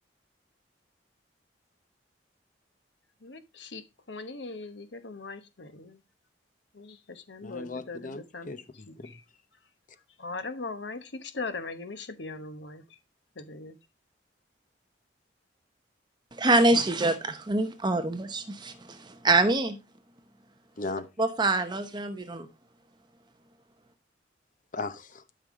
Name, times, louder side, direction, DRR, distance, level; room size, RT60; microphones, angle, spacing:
voice 1, 3.2-3.8 4.1-6.0 6.7-8.5 8.9-9.2 10.2-12.8 13.4-13.8, left 3 dB, 70° left, 1.1 m, -40 dB
voice 2, 7.4-9.2 20.8-21.1 24.7-25.2, left 3 dB, 45° left, 0.9 m, -37 dB
voice 3, 16.4-19.8 21.2-22.5, right 2 dB, 25° right, 0.9 m, -25 dB
12.0 x 5.6 x 3.7 m
head